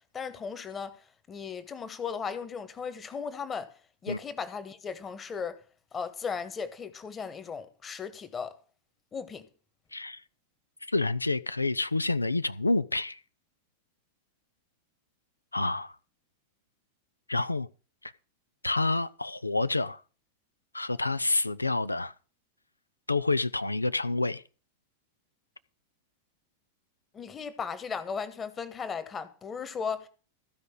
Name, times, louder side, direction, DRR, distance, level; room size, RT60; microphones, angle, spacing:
voice 1, 0.1-1.0 1.3-3.7 4.0-5.6 5.9-8.6 9.1-9.5 27.1-30.1, left 6 dB, 20° left, 1.5 m, -36 dB
voice 2, 10.9-13.2 15.5-15.9 17.3-17.7 18.0-18.1 18.6-20.0 20.7-22.1 23.1-24.4, left 2 dB, 85° left, 0.5 m, -28 dB
15.5 x 5.2 x 8.1 m
figure-of-eight pair, 90°, 0 cm